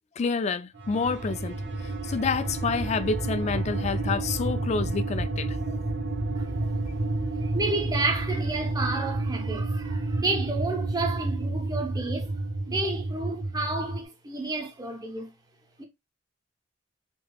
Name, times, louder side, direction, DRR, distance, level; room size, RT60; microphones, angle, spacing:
voice 1, 0.2-1.6 2.0-5.8, left 5 dB, 35° left, 0.3 m, -28 dB
sound 1, 0.7-14.0, right 2 dB, 60° right, 0.8 m, -30 dB
voice 2, 6.3-6.7 7.4-12.4 12.7-15.3 15.8-15.9, right 3 dB, 20° right, 0.7 m, -31 dB
3.3 x 3.0 x 2.3 m
head